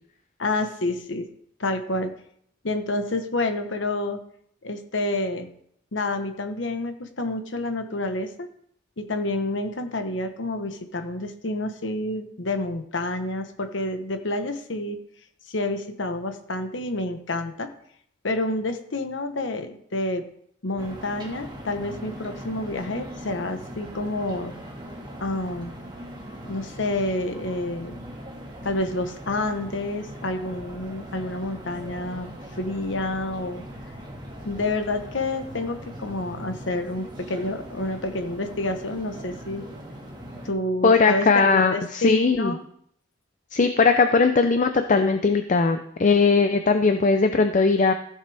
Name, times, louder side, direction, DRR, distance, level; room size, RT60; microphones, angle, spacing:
voice 1, 0.4-1.3 1.6-2.1 2.6-4.2 4.6-5.5 5.9-8.5 9.0-15.0 15.5-17.7 18.2-20.2 20.6-24.5 25.2-25.7 26.4-28.0 28.6-33.6 34.4-39.7 40.4-42.6, left 2 dB, 70° left, 7 dB, 1.1 m, -28 dB
sound 1, 20.8-40.5, equal, 25° right, 1.8 m, -40 dB
voice 2, 40.8-42.5 43.5-47.9, left 4 dB, 40° left, 7 dB, 0.5 m, -19 dB
15.0 x 6.6 x 3.4 m, 0.67 s
head